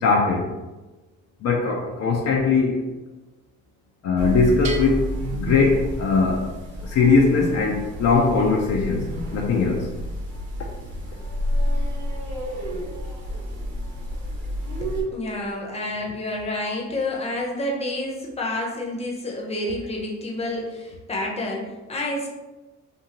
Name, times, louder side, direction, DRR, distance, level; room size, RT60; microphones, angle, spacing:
voice 1, 0.0-0.5 1.4-2.8 4.0-6.5 6.8-9.1 9.3-9.9, left 4 dB, 60° left, 0 dB, 0.5 m, -20 dB
sound 1, 4.2-15.0, equal, 80° right, 0.9 m, -30 dB
Bell, 4.6-6.4, right 3 dB, 60° right, 0.6 m, -38 dB
voice 2, 14.8-22.3, left 1 dB, 20° left, -2 dB, 0.7 m, -29 dB
2.6 x 2.6 x 2.9 m, 1.1 s
cardioid pair, 90°, 30 cm